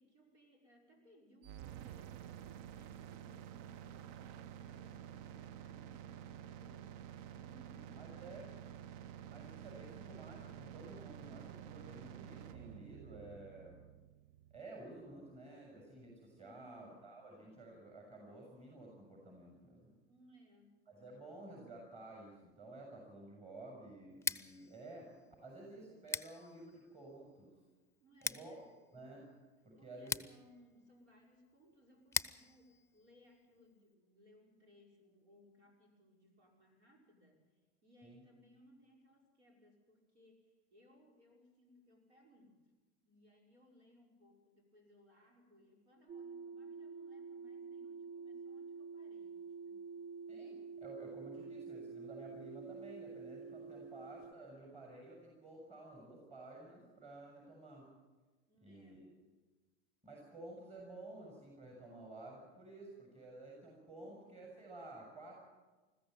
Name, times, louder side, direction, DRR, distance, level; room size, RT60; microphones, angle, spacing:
voice 1, 0.0-8.5 16.3-17.1 20.1-20.8 28.0-28.7 29.8-42.6 43.0-49.9 53.7-54.1 58.5-59.1 64.0-64.2, equal, 90° right, 1 dB, 5.5 m, -65 dB
sound 1, 1.4-15.4, right 10 dB, 60° right, 0.7 m, -51 dB
voice 2, 7.9-8.4 9.3-13.8 14.5-19.9 20.9-25.1 25.4-27.5 28.2-28.6 28.9-29.2 29.6-30.1 38.0-38.2 50.3-57.9 58.6-59.1 60.0-65.4, right 2 dB, 20° right, -1 dB, 6.4 m, -52 dB
Scissors, 24.1-33.9, left 5 dB, 10° left, 0.6 m, -45 dB
sound 2, 46.1-54.3, right 5 dB, 45° right, 1.1 m, -48 dB
21.0 x 14.5 x 9.1 m, 1.2 s
hypercardioid pair, 90°, 32 cm